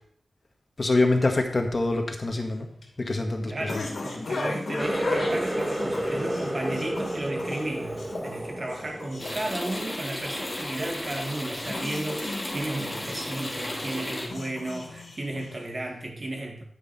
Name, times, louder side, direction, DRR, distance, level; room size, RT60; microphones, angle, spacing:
voice 1, 0.8-2.7 3.0-3.9, left 2 dB, 40° left, 4 dB, 1.8 m, -25 dB
sound 1, 2.4-15.9, left 3 dB, 75° left, 2.5 m, -37 dB
voice 2, 3.5-16.6, right 1 dB, 45° right, 2 dB, 2.3 m, -34 dB
Water tap faucet, 4.8-10.3 10.6-11.1 11.6-11.9 12.6-12.7, right 1 dB, 15° right, 1.6 m, -31 dB
sound 2, 9.2-14.3, left 1 dB, 20° left, 2.8 m, -34 dB
9.8 x 9.1 x 4.4 m, 0.63 s
wide cardioid pair, 95°, 0 cm